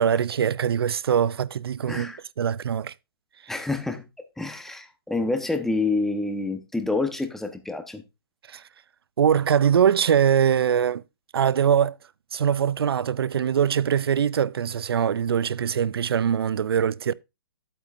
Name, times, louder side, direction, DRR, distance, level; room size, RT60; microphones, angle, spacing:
voice 1, 0.0-2.9 8.5-8.6 9.2-11.0 11.3-12.0 12.3-17.1, right 8 dB, 80° right, 0.5 m, -22 dB
voice 2, 1.9-2.2 3.5-4.0 4.4-8.0, left 3 dB, 5° left, 1.0 m, -27 dB
11.0 x 8.5 x 2.6 m
hypercardioid pair, 140°, 13 cm